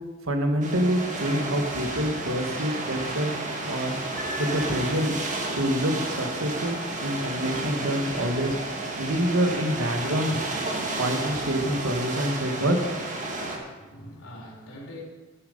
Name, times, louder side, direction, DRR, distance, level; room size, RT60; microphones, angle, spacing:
voice 1, 0.3-3.3 3.6-3.9 4.4-5.2 5.5-8.6 9.0-10.4 11.0-12.8, equal, 85° right, 4 dB, 1.6 m, -26 dB
sound 1, 0.6-13.6, right 2 dB, 40° right, 1.8 m, -32 dB
Piano, 4.1-5.4, equal, 15° left, 2.9 m, -39 dB
voice 2, 11.9-12.6 13.2-15.0, left 1 dB, 90° left, -3 dB, 3.7 m, -44 dB
11.0 x 10.0 x 5.3 m, 1.3 s
head